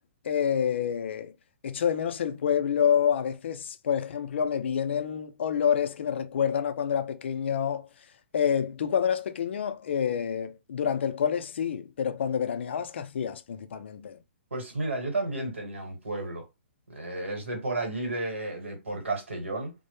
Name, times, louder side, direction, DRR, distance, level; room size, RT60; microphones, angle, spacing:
voice 1, 0.2-1.3 1.6-7.9 8.3-14.2, left 8 dB, 70° left, 0.4 m, -28 dB
voice 2, 14.5-16.5 16.9-19.7, right 2 dB, 90° right, 1.1 m, -32 dB
2.1 x 2.0 x 2.9 m
hypercardioid pair, 125°, 6 cm